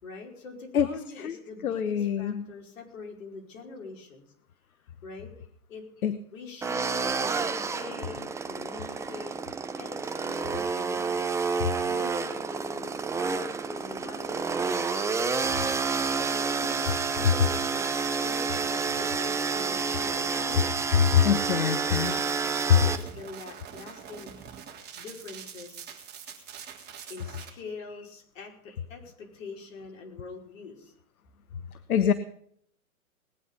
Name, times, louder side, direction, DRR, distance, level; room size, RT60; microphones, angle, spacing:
voice 1, 0.0-4.2 4.8-5.3 5.7-5.8 6.3-9.3 9.8-11.3 11.8-15.6 16.1-20.7 21.3-24.3 25.0-26.0 27.1-30.9, left 4 dB, 60° left, 2 dB, 5.1 m, -44 dB
voice 2, 1.6-2.5 6.0-6.2 21.1-22.1 31.9-32.1, left 9 dB, 75° left, 13 dB, 1.2 m, -24 dB
sound 1, 6.6-23.0, right 5 dB, 5° right, 0.7 m, -29 dB
sound 2, 21.9-27.5, right 8 dB, 20° right, 3.3 m, -44 dB
20.0 x 9.9 x 5.4 m, 0.66 s
hypercardioid pair, 125°, 43 cm